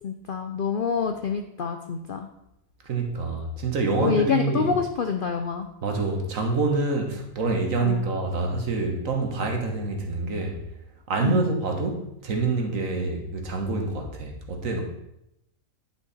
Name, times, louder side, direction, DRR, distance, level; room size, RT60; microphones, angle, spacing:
voice 1, 0.0-2.3 4.0-5.7 7.8-8.1 11.2-11.5, left 6 dB, 65° left, 6 dB, 0.5 m, -27 dB
voice 2, 2.8-4.7 5.8-10.6 11.1-14.8, right 3 dB, 60° right, 2 dB, 1.6 m, -26 dB
10.0 x 5.8 x 4.1 m, 0.84 s
omnidirectional pair, 1.6 m